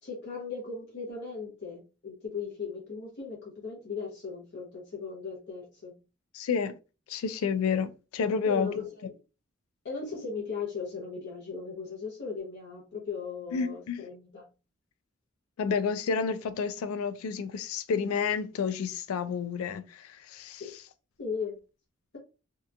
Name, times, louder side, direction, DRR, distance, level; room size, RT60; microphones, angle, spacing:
voice 1, 0.0-6.0 8.4-9.1 9.8-14.5 20.6-20.7 21.2-21.6, left 5 dB, 55° left, 0.8 m, -37 dB
voice 2, 6.3-6.8 7.1-8.8 13.5-14.0 15.6-20.6, left 6 dB, 80° left, 0.3 m, -30 dB
2.8 x 2.2 x 2.4 m
head